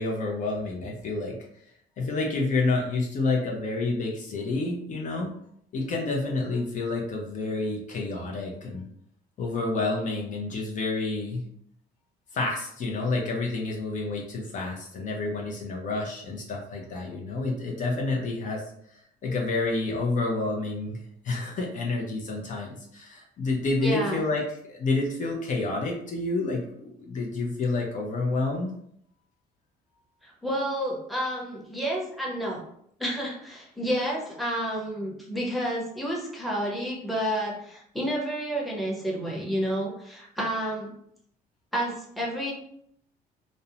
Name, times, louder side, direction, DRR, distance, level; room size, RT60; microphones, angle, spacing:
voice 1, 0.0-1.4 2.0-5.3 5.7-8.9 9.4-11.4 12.3-18.6 19.2-28.7, left 3 dB, 50° left, -1 dB, 0.5 m, -29 dB
voice 2, 23.8-24.2 30.2-32.6 33.0-40.9 41.7-42.5, equal, ahead, -4 dB, 0.8 m, -30 dB
2.5 x 2.0 x 2.7 m, 0.70 s
cardioid pair, 110°, 17 cm